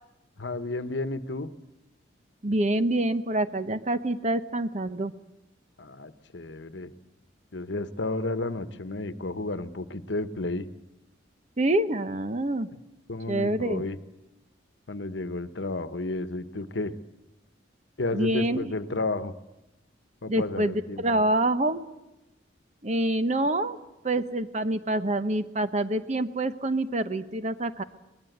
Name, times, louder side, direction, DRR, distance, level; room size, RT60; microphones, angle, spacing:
voice 1, 0.4-1.5 5.8-6.9 7.5-10.7 13.1-14.0 14.9-16.9 18.0-19.3 20.2-21.2, left 2 dB, 70° left, 12 dB, 1.1 m, -32 dB
voice 2, 2.4-5.1 11.6-12.7 13.3-13.8 18.1-18.7 20.3-21.8 22.8-23.8 24.0-27.8, right 1 dB, 35° right, 11 dB, 1.0 m, -26 dB
24.0 x 19.5 x 8.0 m, 0.93 s
head